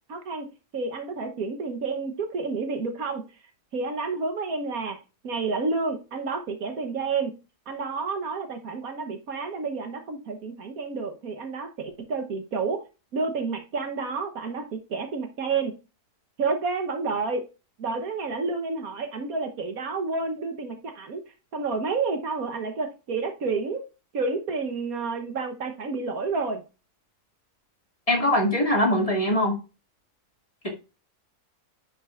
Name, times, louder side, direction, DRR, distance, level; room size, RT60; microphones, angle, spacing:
voice 1, 0.1-0.5 0.7-3.2 3.7-5.0 5.2-7.4 7.7-12.8 13.1-15.7 16.4-17.4 17.8-21.2 21.5-23.9 24.1-26.6, right 4 dB, 70° right, 1.5 m, -30 dB
voice 2, 28.1-29.6, left 1 dB, 20° left, 2.2 m, -22 dB
10.0 x 5.4 x 2.5 m
omnidirectional pair, 1.6 m